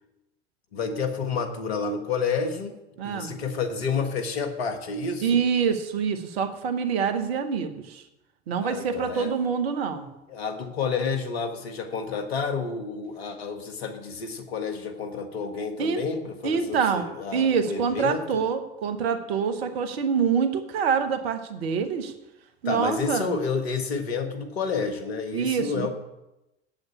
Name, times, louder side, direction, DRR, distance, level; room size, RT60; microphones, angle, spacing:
voice 1, 0.7-2.7 3.0-5.4 8.6-9.3 10.3-18.4 22.6-25.9, left 5 dB, 75° left, 7 dB, 1.6 m, -30 dB
voice 2, 3.0-3.3 5.2-8.0 8.5-10.1 15.8-16.0 16.4-17.0 17.3-22.1 22.6-23.3 25.3-25.9, right 6 dB, 70° right, 8 dB, 1.3 m, -26 dB
8.1 x 8.0 x 8.6 m, 0.93 s
figure-of-eight pair, 70°, 32 cm